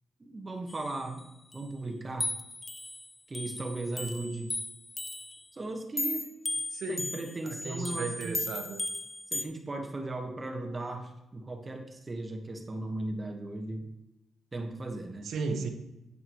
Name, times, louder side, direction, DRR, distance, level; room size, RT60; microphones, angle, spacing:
voice 1, 0.2-1.3 1.5-2.3 3.3-4.5 5.5-6.3 6.9-8.4 9.3-13.9 14.5-15.3, right 2 dB, 25° right, 3 dB, 1.5 m, -37 dB
sound 1, 0.7-1.2 1.5-1.6 2.2-5.4 6.0-9.4, left 2 dB, 20° left, 0.6 m, -36 dB
voice 2, 6.7-7.0 7.4-8.8 15.2-15.7, right 4 dB, 65° right, 5 dB, 1.3 m, -34 dB
10.5 x 8.9 x 3.2 m, 0.97 s
cardioid pair, 90°, 0 cm